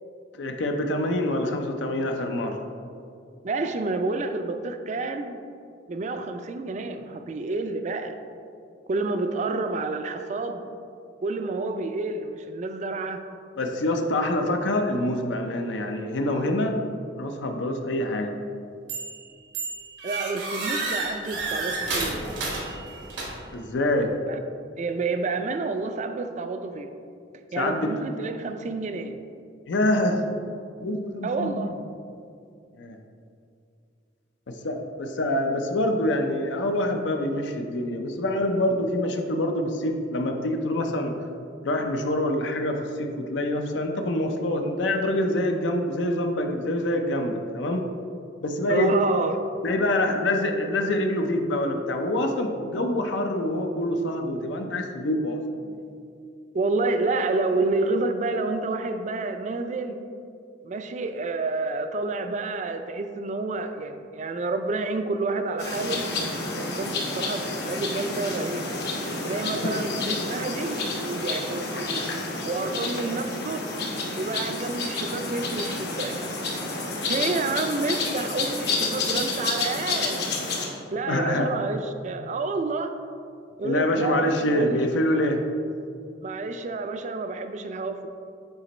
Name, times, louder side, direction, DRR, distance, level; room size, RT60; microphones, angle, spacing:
voice 1, 0.4-2.6 13.6-16.8 17.2-18.4 23.5-24.1 27.6-28.0 29.7-30.2 30.8-31.5 32.8-33.0 34.5-41.1 41.6-47.9 48.4-48.9 49.6-55.7 69.6-69.7 81.1-81.5 83.6-85.4, left 1 dB, 80° left, 4 dB, 0.5 m, -26 dB
voice 2, 3.4-5.4 5.9-8.2 8.9-10.6 11.2-13.2 20.0-22.3 24.3-24.4 24.8-26.9 27.5-29.2 31.2-31.7 48.7-49.4 56.5-60.0 60.6-66.0 66.5-68.7 69.2-72.0 72.4-73.6 74.2-76.2 77.0-80.3 80.9-83.0 83.6-84.8 86.2-88.1, right 3 dB, 40° right, 7 dB, 0.4 m, -29 dB
sound 1, 18.9-19.2 19.5-23.6, right 3 dB, 85° right, 1.2 m, -31 dB
sound 2, 65.6-80.7, left 3 dB, 65° left, 0.9 m, -30 dB
7.9 x 2.9 x 4.2 m, 2.4 s
head